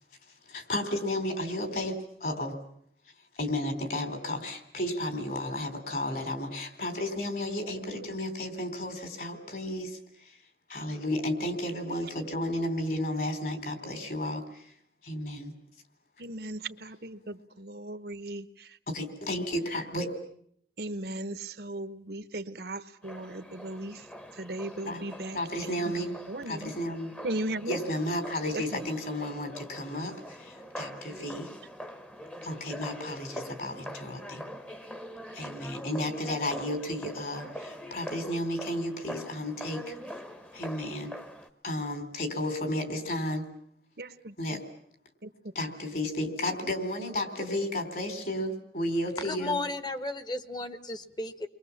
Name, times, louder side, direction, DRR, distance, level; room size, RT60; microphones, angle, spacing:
voice 1, 0.5-2.5 3.4-10.4 10.7-14.7 15.0-15.5 18.9-20.1 24.9-25.0 25.3-26.1 26.5-27.1 27.7-31.5 32.4-34.4 35.3-40.0 40.5-41.1 41.6-43.4 44.4-44.6 45.6-49.6, left 1 dB, 55° left, 8 dB, 3.9 m, -33 dB
voice 2, 16.2-18.8 20.8-24.1 24.3-26.7 27.2-27.8 28.5-28.9 30.9-31.2 44.0-44.6 45.2-45.3, right 1 dB, 60° right, 12 dB, 1.1 m, -37 dB
sound 1, 23.0-41.5, equal, 5° left, 1.1 m, -44 dB
voice 3, 49.2-51.5, left 2 dB, 25° left, 11 dB, 1.3 m, -34 dB
30.0 x 22.5 x 7.3 m, 0.66 s
head